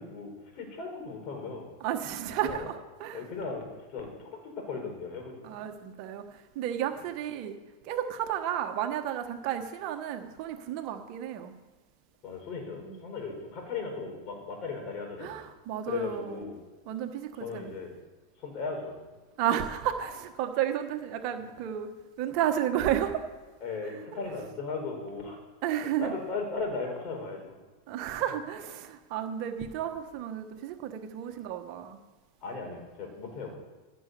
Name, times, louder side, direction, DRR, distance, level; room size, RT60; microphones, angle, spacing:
voice 1, 0.0-1.7 2.4-2.7 3.1-4.3 4.6-5.6 12.2-15.4 15.8-16.6 17.4-17.9 18.4-19.0 23.6-25.4 26.0-27.6 32.4-33.6, left 4 dB, 45° left, 2 dB, 4.7 m, -37 dB
voice 2, 1.8-3.3 5.4-7.6 7.8-11.5 12.9-13.0 15.2-16.4 16.9-17.7 19.4-21.9 22.2-23.3 24.1-24.2 25.6-26.1 27.9-32.0, right 10 dB, 50° right, 6 dB, 1.2 m, -32 dB
14.5 x 6.4 x 6.8 m, 1.3 s
hypercardioid pair, 95°, 0 cm